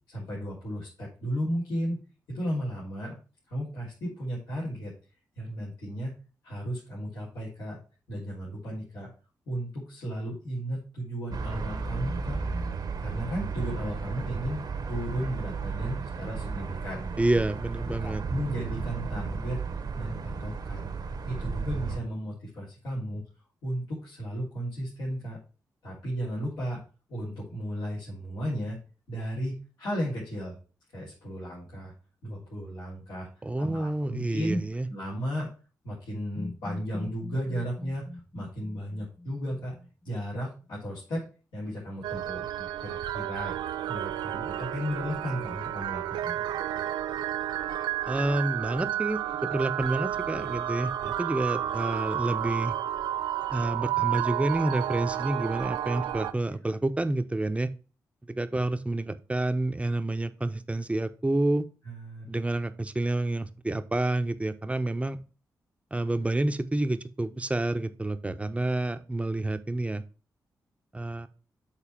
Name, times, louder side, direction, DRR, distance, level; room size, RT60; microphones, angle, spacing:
voice 1, 0.0-2.0 2.3-3.2 3.5-4.9 5.4-6.1 6.4-7.8 8.1-9.1 9.5-12.4 13.0-17.1 18.0-19.6 20.0-20.9 21.3-23.2 23.6-25.4 25.8-26.8 27.1-28.8 29.1-30.6 30.9-31.9 32.2-33.3 33.6-34.6 34.9-35.5 35.8-39.7 40.0-41.3 41.5-43.5 43.9-46.5 58.5-58.6 61.8-62.3, equal, 80° left, -9 dB, 3.5 m, -34 dB
sound 1, 11.3-22.0, right 5 dB, 65° right, 1.2 m, -34 dB
voice 2, 17.2-18.2 33.4-34.9 48.0-52.7 53.5-57.7 58.4-61.7 62.3-65.2 65.9-70.0 70.9-71.3, right 2 dB, 15° right, 9 dB, 0.8 m, -29 dB
sound 2, 36.4-40.3 44.4-46.8, left 1 dB, 20° left, 1.3 m, -44 dB
sound 3, 42.0-56.3, right 12 dB, 85° right, 0.4 m, -31 dB
7.1 x 4.0 x 5.7 m, 0.35 s
supercardioid pair, 50°, 7 cm